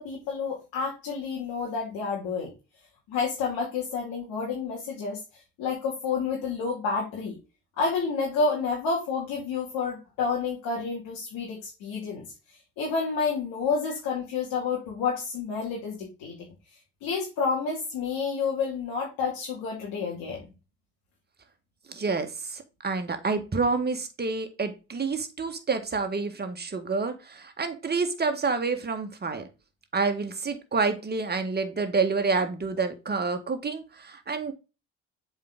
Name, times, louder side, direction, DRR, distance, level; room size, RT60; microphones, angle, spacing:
voice 1, 0.0-2.5 3.1-7.4 7.8-12.2 12.8-16.5 17.0-20.5, left 5 dB, 60° left, -2 dB, 2.5 m, -29 dB
voice 2, 21.9-29.4 29.9-34.5, right 4 dB, 25° right, 7 dB, 1.7 m, -28 dB
7.5 x 4.8 x 3.8 m, 0.29 s
hypercardioid pair, 55°, 39 cm